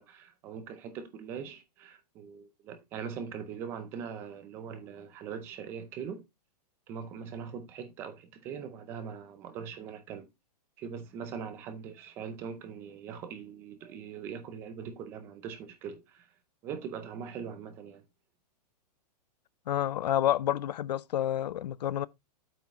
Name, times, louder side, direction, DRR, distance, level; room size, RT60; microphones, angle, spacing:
voice 1, 0.0-6.3 6.9-10.3 10.8-16.3 16.6-18.0, right 7 dB, 10° right, 0.5 m, -41 dB
voice 2, 19.7-22.1, left 11 dB, 85° left, 0.6 m, -29 dB
8.2 x 6.1 x 2.9 m
hypercardioid pair, 180°, 21 cm